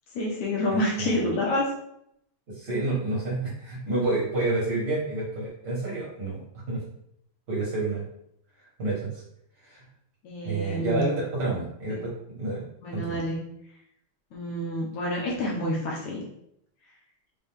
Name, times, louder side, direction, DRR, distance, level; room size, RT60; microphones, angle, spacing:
voice 1, 0.2-1.7 10.2-11.1 11.9-12.1 12.8-13.4 14.3-16.2, left 1 dB, 70° left, -3 dB, 1.8 m, -28 dB
voice 2, 1.0-1.3 2.6-6.4 6.7-6.8 7.5-8.0 8.8-9.2 9.7-9.8 10.4-12.6 12.9-13.2, right 2 dB, 60° right, -7 dB, 1.1 m, -29 dB
6.1 x 2.4 x 3.5 m, 0.74 s
omnidirectional pair, 4.1 m